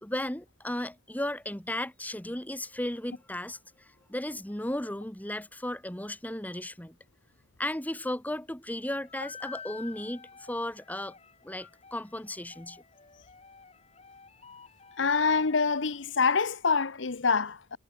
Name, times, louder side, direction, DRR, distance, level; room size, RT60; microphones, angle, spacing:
voice 1, 0.0-3.6 4.1-6.9 7.6-11.1 11.4-12.8, left 1 dB, 10° left, 1.4 m, -35 dB
sound 1, 9.0-16.1, left 5 dB, 30° left, 6.2 m, -50 dB
voice 2, 15.0-17.8, left 5 dB, 65° left, 1.0 m, -26 dB
head